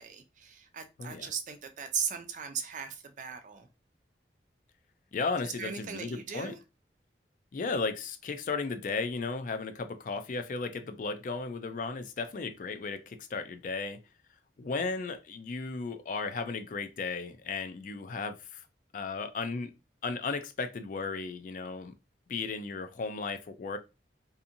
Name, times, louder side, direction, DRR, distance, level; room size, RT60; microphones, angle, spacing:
voice 1, 0.0-3.7 5.4-6.6, right 7 dB, 45° right, 0.4 m, -38 dB
voice 2, 1.0-1.3 5.1-6.5 7.5-14.0 14.6-18.6 18.9-19.7 20.0-21.9 22.3-23.8, left 4 dB, 50° left, 0.4 m, -35 dB
2.7 x 2.6 x 2.5 m
head